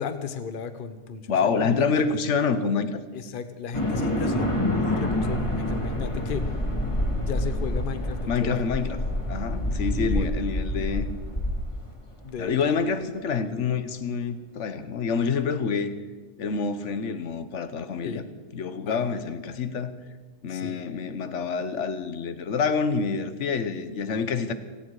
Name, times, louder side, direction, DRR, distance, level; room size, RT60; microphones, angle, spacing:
voice 1, 0.0-2.2 3.1-6.5 7.2-8.6 9.6-10.3 12.2-12.8 18.0-18.2 18.9-19.1 20.5-20.8, left 6 dB, 50° left, 10 dB, 1.1 m, -35 dB
voice 2, 1.3-3.0 8.3-9.0 9.3-11.1 12.4-15.9 16.4-18.2 18.5-20.0 20.4-24.5, left 5 dB, 80° left, 11 dB, 1.3 m, -27 dB
sound 1, 3.7-12.2, left 1 dB, 25° left, 1.9 m, -27 dB
17.5 x 16.5 x 4.8 m, 1.3 s
omnidirectional pair, 1.2 m